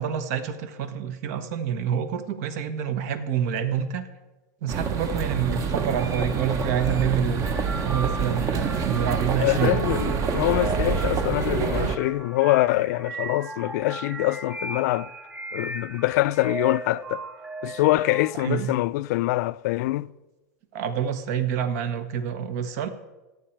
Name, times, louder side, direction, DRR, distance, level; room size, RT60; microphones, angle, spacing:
voice 1, 0.0-4.0 4.6-7.4 7.7-9.8 18.4-18.7 20.7-22.9, right 8 dB, 65° right, 1.2 m, -27 dB
sound 1, 4.7-12.0, right 5 dB, 35° right, 0.9 m, -26 dB
sound 2, 6.4-18.8, right 3 dB, 10° right, 0.6 m, -38 dB
voice 2, 9.4-15.1 15.5-17.2 17.6-20.1, left 18 dB, 65° left, 0.4 m, -24 dB
14.0 x 9.1 x 4.6 m
supercardioid pair, 130°, 9 cm